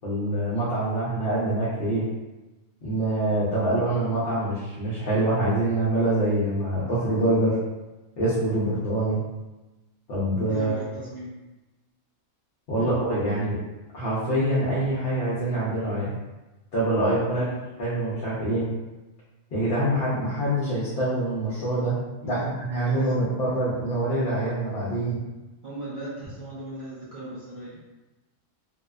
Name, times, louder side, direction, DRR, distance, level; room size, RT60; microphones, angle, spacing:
voice 1, 0.0-2.0 2.8-7.6 8.2-9.2 10.1-10.7 12.7-13.6 13.9-16.1 16.7-17.4 17.8-18.7 19.5-22.0 22.2-25.2, right 1 dB, 55° left, -8 dB, 0.7 m, -25 dB
voice 2, 10.5-11.3 12.8-12.9 17.3-17.6 22.2-22.5 22.8-23.1 25.6-28.0, right 2 dB, 70° right, -9 dB, 0.4 m, -37 dB
2.7 x 2.0 x 2.3 m, 1.1 s
omnidirectional pair, 1.4 m